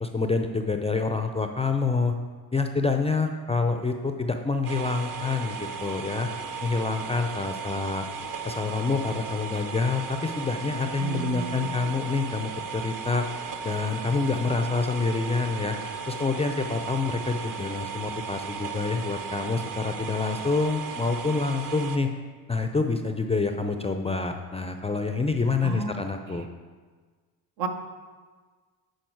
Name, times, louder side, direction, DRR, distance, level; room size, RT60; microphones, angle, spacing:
voice 1, 0.0-2.2 2.5-6.3 6.6-8.1 8.4-13.3 13.6-15.8 16.1-22.1 22.5-26.5, left 4 dB, 15° left, 6 dB, 0.4 m, -27 dB
sound 1, 4.6-22.0, right 5 dB, 40° right, 0.8 m, -36 dB
voice 2, 11.0-12.0 25.6-26.4 27.6-27.7, right 4 dB, 75° right, 5 dB, 1.0 m, -33 dB
9.2 x 4.3 x 4.6 m, 1.5 s
hypercardioid pair, 65°, 49 cm